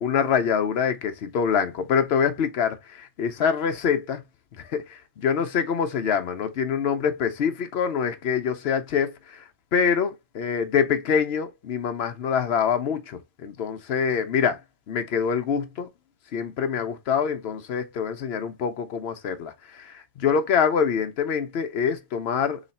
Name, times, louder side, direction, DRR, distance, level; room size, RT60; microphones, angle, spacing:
voice 1, 0.0-4.2 4.7-9.4 9.7-14.6 14.9-15.9 16.3-22.6, left 7 dB, 65° left, 0.9 m, -25 dB
3.2 x 3.0 x 4.1 m
omnidirectional pair, 1.2 m